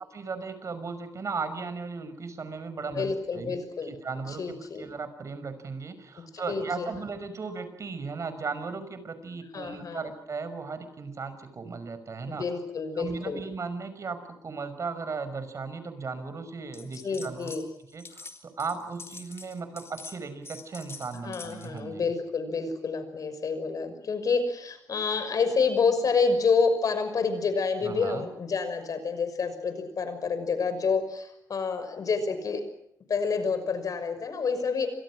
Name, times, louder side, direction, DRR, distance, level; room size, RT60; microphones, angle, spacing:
voice 1, 0.1-4.4 4.8-12.4 13.0-17.5 17.9-18.3 18.6-22.1 27.8-28.3, right 4 dB, 50° right, 11 dB, 5.6 m, -36 dB
voice 2, 2.8-3.9 4.3-4.8 6.3-6.9 9.5-10.1 12.3-13.4 17.0-17.6 21.2-32.6 33.1-34.9, left 4 dB, 60° left, 10 dB, 6.0 m, -28 dB
sound 1, 16.7-17.6 17.9-21.8, left 4 dB, 40° left, 3.5 m, -45 dB
30.0 x 26.5 x 6.3 m, 0.75 s
wide cardioid pair, 115°, 7 cm